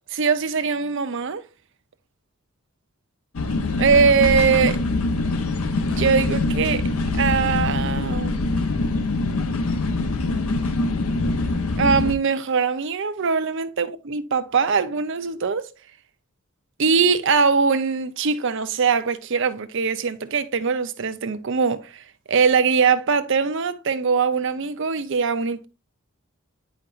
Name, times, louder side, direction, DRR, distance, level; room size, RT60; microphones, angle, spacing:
voice 1, 0.1-1.4 3.8-4.8 5.9-6.8 7.2-8.5 11.8-15.6 16.8-25.7, right 5 dB, 60° right, 0.6 m, -21 dB
sound 1, 3.3-12.1, left 2 dB, 85° left, 0.7 m, -24 dB
8.7 x 5.2 x 2.5 m
head